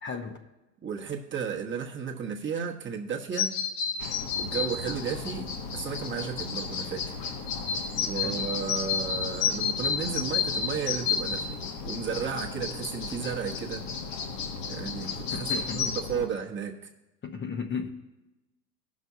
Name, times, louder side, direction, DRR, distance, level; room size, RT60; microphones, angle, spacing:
voice 1, 0.0-0.4 8.1-8.4 15.3-16.0 17.2-17.9, left 6 dB, 25° left, 0.9 m, -35 dB
voice 2, 0.8-3.5 4.4-7.0 8.0-11.6 11.8-13.8 14.6-16.8, right 7 dB, 25° right, 1.2 m, -33 dB
sound 1, 3.3-16.0, left 6 dB, 65° left, 2.5 m, -32 dB
sound 2, 4.0-16.3, left 4 dB, 40° left, 1.1 m, -39 dB
17.0 x 6.2 x 2.8 m
hypercardioid pair, 85°, 49 cm